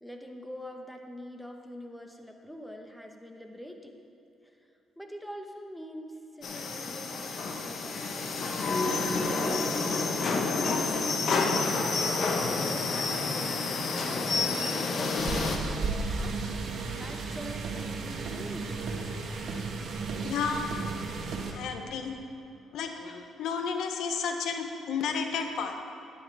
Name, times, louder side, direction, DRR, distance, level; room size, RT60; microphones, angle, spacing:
voice 1, 0.0-3.9 5.0-10.4 12.4-13.7 14.0-19.2 22.0-22.2 24.2-24.4, equal, 5° left, 3 dB, 1.0 m, -45 dB
sound 1, 6.4-15.6, left 3 dB, 55° left, 1.0 m, -29 dB
sound 2, 15.2-21.5, right 4 dB, 65° right, 1.1 m, -34 dB
voice 2, 20.2-20.7 21.5-22.1 22.7-25.7, left 6 dB, 80° left, 5 dB, 0.7 m, -32 dB
11.0 x 9.7 x 3.4 m, 2.9 s
cardioid pair, 90°, 0 cm